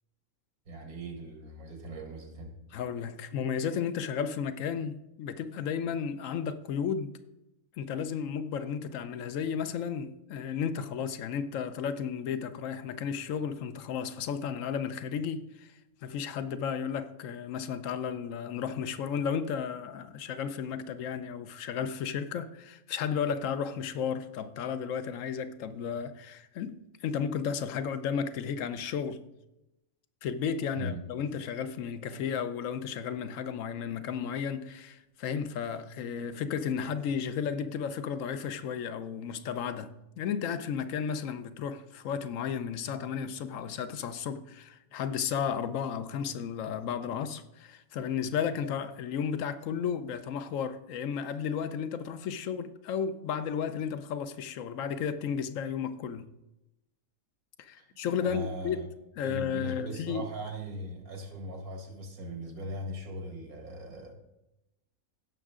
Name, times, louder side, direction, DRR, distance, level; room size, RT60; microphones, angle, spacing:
voice 1, 0.7-2.6 30.7-31.0 57.8-57.9 58.2-58.9 59.2-64.1, right 1 dB, 90° right, 2.2 m, -39 dB
voice 2, 2.7-7.1 7.8-15.7 16.0-29.2 30.2-56.3 57.6-58.8 59.2-60.2, left 7 dB, 70° left, 1.0 m, -33 dB
16.0 x 6.4 x 3.7 m
omnidirectional pair, 1.5 m